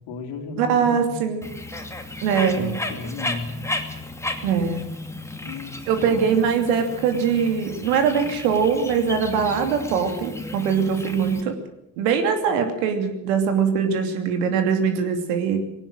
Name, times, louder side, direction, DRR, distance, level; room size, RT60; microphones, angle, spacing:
voice 1, 0.1-1.2 2.5-3.6 5.4-6.4, left 3 dB, 55° left, 4 dB, 3.5 m, -34 dB
voice 2, 0.6-1.5 2.2-2.8 4.4-4.8 5.9-11.6 12.0-15.6, right 6 dB, 65° right, 6 dB, 2.9 m, -22 dB
Bird, 1.4-11.4, left 2 dB, 5° left, 2.5 m, -34 dB
21.5 x 18.0 x 7.6 m, 0.84 s
figure-of-eight pair, 55°, 48 cm